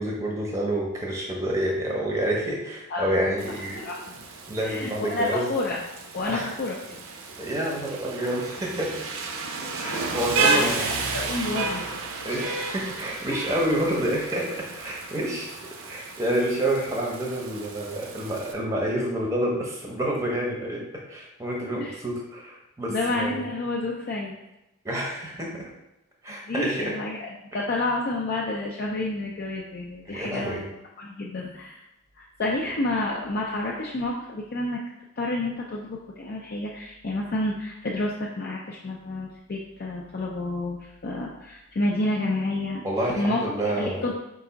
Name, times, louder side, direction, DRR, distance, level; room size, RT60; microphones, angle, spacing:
voice 1, 0.0-3.8 4.5-5.5 6.3-6.5 7.4-9.0 9.7-10.9 12.2-15.5 15.8-20.8 21.1-23.4 24.8-25.7 26.2-26.9 30.1-30.6 42.8-44.0, right 1 dB, 15° right, -2 dB, 0.7 m, -28 dB
Rain, 3.4-18.5, right 4 dB, 75° right, 0.6 m, -32 dB
voice 2, 3.8-4.2 4.6-5.8 6.1-7.0 10.3-11.8 21.8-22.0 22.9-24.3 26.5-27.3 27.5-30.6 31.0-31.8 32.2-34.8 35.2-42.8 43.2-43.4 43.8-44.1, left 2 dB, 45° left, -3 dB, 0.4 m, -29 dB
4.6 x 2.5 x 3.9 m, 0.91 s
head